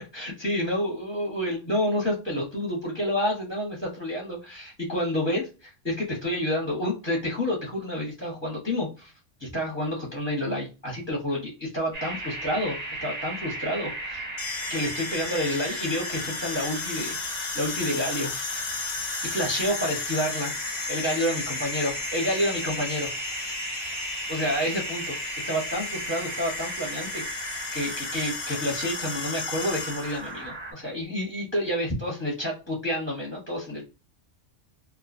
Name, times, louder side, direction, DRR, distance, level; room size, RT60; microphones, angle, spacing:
voice 1, 0.1-9.1 9.4-14.2 14.7-17.2 17.5-18.4 19.2-20.5 20.9-23.1 24.3-25.2 25.5-33.8, equal, 15° left, -2 dB, 0.7 m, -29 dB
sound 1, 11.9-30.7, right 2 dB, 40° right, 0.7 m, -36 dB
sound 2, 14.4-30.3, left 5 dB, 85° left, 1.1 m, -35 dB
2.4 x 2.2 x 2.5 m, 0.30 s
omnidirectional pair, 1.3 m